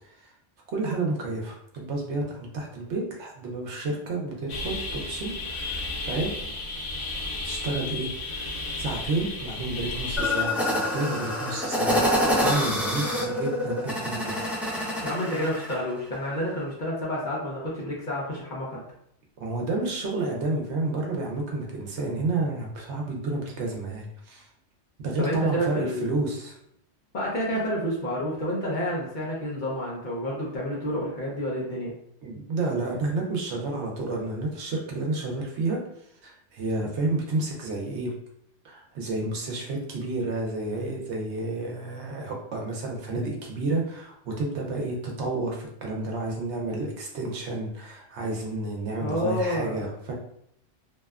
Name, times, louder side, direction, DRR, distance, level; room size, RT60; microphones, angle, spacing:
voice 1, 0.7-6.3 7.4-12.0 12.3-14.4 19.4-24.5 25.0-26.6 32.2-35.8 36.2-38.1 38.6-50.1, right 2 dB, 70° right, 0 dB, 0.9 m, -30 dB
sound 1, 4.5-10.5, left 2 dB, 85° left, 1.1 m, -33 dB
sound 2, 10.2-15.8, left 1 dB, ahead, 0.5 m, -26 dB
voice 2, 15.0-18.8 25.2-26.2 27.1-31.9 49.0-49.9, equal, 50° left, -5 dB, 0.7 m, -29 dB
2.7 x 2.2 x 2.3 m, 0.72 s
omnidirectional pair, 1.2 m